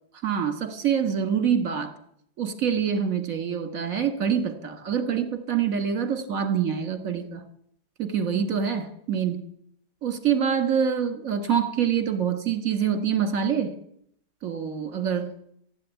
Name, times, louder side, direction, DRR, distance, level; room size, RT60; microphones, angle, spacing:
voice 1, 0.2-1.9 2.4-7.4 8.0-9.4 10.0-13.7 14.4-15.3, right 7 dB, 50° right, 8 dB, 2.1 m, -25 dB
15.5 x 8.6 x 9.3 m, 0.70 s
omnidirectional pair, 1.9 m